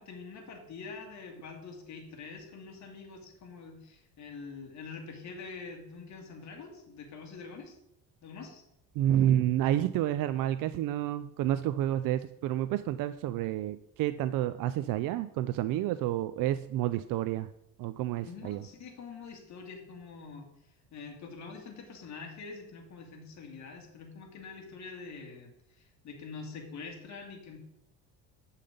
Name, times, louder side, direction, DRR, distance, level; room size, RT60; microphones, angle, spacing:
voice 1, 0.0-7.7 8.2-8.6 18.2-20.5 20.9-27.6, left 4 dB, 50° left, 1 dB, 2.2 m, -45 dB
voice 2, 8.9-17.5 17.8-18.7, right 12 dB, 65° right, 13 dB, 0.5 m, -29 dB
8.3 x 5.6 x 5.2 m, 0.81 s
cardioid pair, 115°, 36 cm